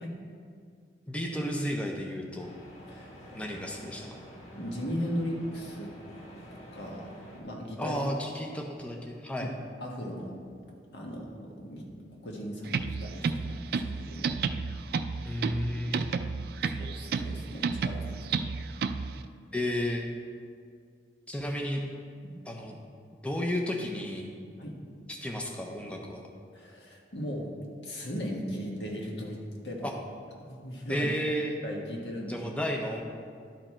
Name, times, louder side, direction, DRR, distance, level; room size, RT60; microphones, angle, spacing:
voice 1, 1.1-2.5 3.3-4.2 7.8-9.5 15.2-16.1 19.5-20.0 21.3-21.8 22.5-22.8 23.2-24.3 25.1-26.2 29.8-29.9 30.9-31.5 32.3-33.0, equal, 5° left, 1 dB, 0.6 m, -32 dB
sound 1, 2.4-7.4, equal, 40° left, 1.4 m, -48 dB
voice 2, 2.9-3.4 4.5-5.9 6.5-8.0 9.4-9.5 9.8-10.4 10.9-11.9 12.2-14.4 16.6-18.2 22.2-22.3 24.6-24.8 26.5-27.5 27.8-29.9 30.4-31.1 31.6-32.4, equal, 80° left, -1 dB, 1.5 m, -37 dB
sound 2, 12.7-19.2, right 5 dB, 55° right, 0.3 m, -32 dB
11.5 x 4.8 x 4.4 m, 2.1 s
head